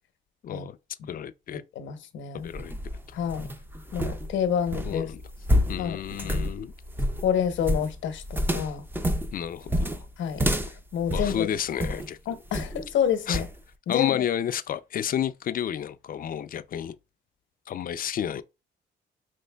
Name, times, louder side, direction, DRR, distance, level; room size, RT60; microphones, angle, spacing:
voice 1, 0.4-0.8 1.1-1.6 2.4-2.7 3.1-3.2 4.8-5.2 5.7-6.7 9.3-10.1 11.1-12.2 13.3-13.4 13.9-17.0 17.7-18.4, left 10 dB, 45° left, 0.4 m, -31 dB
voice 2, 1.7-2.5 3.1-3.5 3.9-5.1 5.8-6.5 7.2-8.8 10.2-11.5 12.3-13.5 13.9-14.3, left 8 dB, 75° left, 0.8 m, -28 dB
sound 1, 2.4-12.1 12.5-12.9 13.3-13.6, equal, 10° right, 0.5 m, -29 dB
5.2 x 3.1 x 2.2 m
cardioid pair, 90°, 20 cm